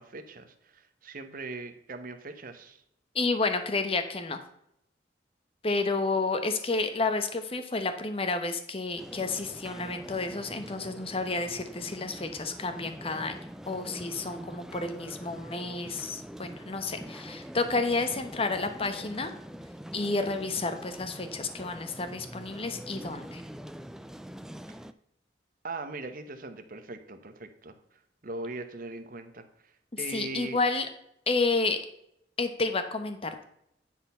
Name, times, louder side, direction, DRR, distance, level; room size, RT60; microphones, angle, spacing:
voice 1, 0.0-2.8 24.7-24.8 25.6-27.8 28.2-29.5 30.0-30.6, right 3 dB, 50° right, 8 dB, 1.0 m, -40 dB
voice 2, 3.1-4.4 5.6-13.4 13.7-19.3 19.9-23.4 30.1-30.9 31.3-31.8 32.4-33.4, left 3 dB, 30° left, 8 dB, 1.0 m, -30 dB
sound 1, 9.0-24.9, equal, 5° right, 0.3 m, -44 dB
10.0 x 4.3 x 5.6 m, 0.74 s
head